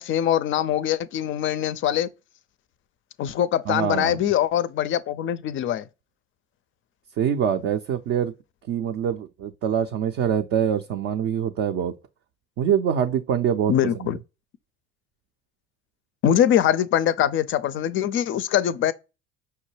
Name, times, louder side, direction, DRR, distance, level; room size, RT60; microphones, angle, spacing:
voice 1, 0.0-2.1 3.2-5.9 13.7-14.2 16.2-18.9, left 10 dB, 40° left, 0.4 m, -23 dB
voice 2, 3.7-4.3 7.2-8.3 8.7-11.9 12.6-13.7 14.0-14.1, right 8 dB, 45° right, 0.4 m, -24 dB
5.6 x 2.1 x 3.1 m
hypercardioid pair, 65°, 33 cm